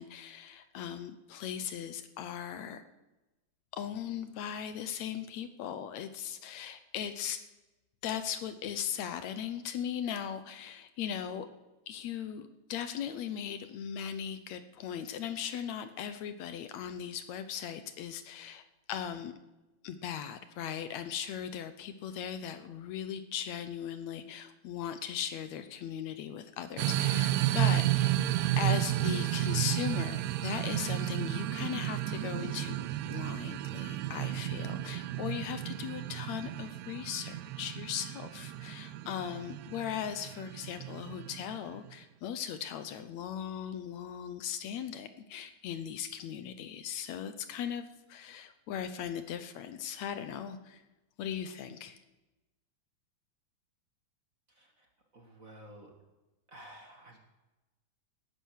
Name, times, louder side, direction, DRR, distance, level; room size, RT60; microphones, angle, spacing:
voice 1, 0.0-2.8 3.7-7.4 8.0-11.5 11.9-18.6 18.9-19.3 19.8-28.3 28.6-32.8 33.1-50.8 51.2-52.0, left 9 dB, 75° left, 10 dB, 2.1 m, -38 dB
sound 1, 26.8-41.9, right 14 dB, 75° right, 1.7 m, -32 dB
voice 2, 54.5-56.0 56.5-57.2, right 1 dB, 30° right, 2 dB, 1.8 m, -53 dB
18.5 x 10.5 x 6.4 m, 1.0 s
omnidirectional pair, 3.4 m